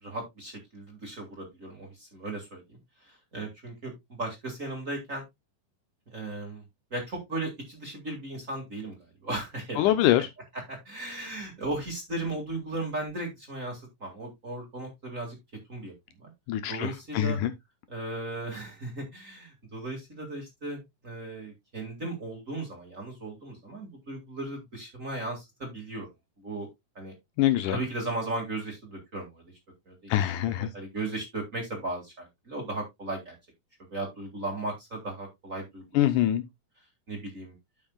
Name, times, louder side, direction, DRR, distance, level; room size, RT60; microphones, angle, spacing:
voice 1, 0.0-2.8 3.0-5.2 6.1-6.6 6.9-9.0 9.2-9.9 10.7-15.4 15.7-15.9 16.2-16.3 16.7-17.4 17.9-26.1 26.4-26.7 27.0-27.1 27.7-29.4 29.9-30.1 30.6-33.3 33.9-36.0 37.1-37.5, right 2 dB, 30° right, 2.0 m, -36 dB
voice 2, 9.8-10.3 16.5-17.5 27.4-27.8 30.1-30.7 35.9-36.4, left 12 dB, 75° left, 2.1 m, -24 dB
12.5 x 5.4 x 2.3 m
omnidirectional pair, 3.8 m